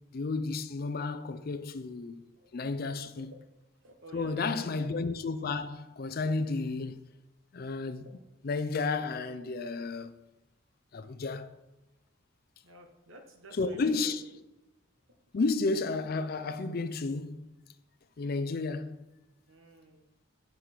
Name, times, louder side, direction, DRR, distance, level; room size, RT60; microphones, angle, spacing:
voice 1, 0.1-2.3 2.5-3.3 4.1-7.0 7.5-8.1 8.4-10.2 10.9-11.6 13.5-14.2 15.3-17.5 18.2-19.0, left 3 dB, 45° left, 0.4 m, -32 dB
voice 2, 3.8-4.7 8.0-8.2 12.6-14.1 19.5-20.0, right 1 dB, 80° right, 1.1 m, -49 dB
6.5 x 5.4 x 4.4 m
head